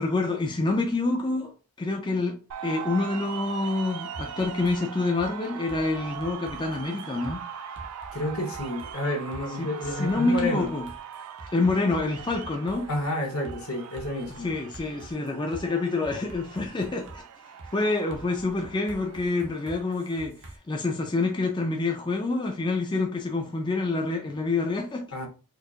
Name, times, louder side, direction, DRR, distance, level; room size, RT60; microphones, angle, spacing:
voice 1, 0.0-1.5 1.8-2.4 2.6-7.4 9.6-10.9 11.5-12.9 14.4-17.2 17.7-25.1, left 3 dB, 20° left, 0.4 m, -27 dB
sound 1, 2.5-20.3, right 8 dB, 85° right, 0.4 m, -41 dB
sound 2, 4.1-4.8 5.2-5.3 5.7-7.4 7.8-8.9 9.3-9.4 9.8-13.1 13.5-13.6 14.0-15.6 16.0-17.2 17.6-17.7 18.1-20.6, right 2 dB, 55° right, 0.8 m, -45 dB
voice 2, 8.1-10.7 12.9-14.5 25.1-25.3, left 1 dB, 70° left, 1.0 m, -30 dB
4.6 x 2.4 x 2.4 m
head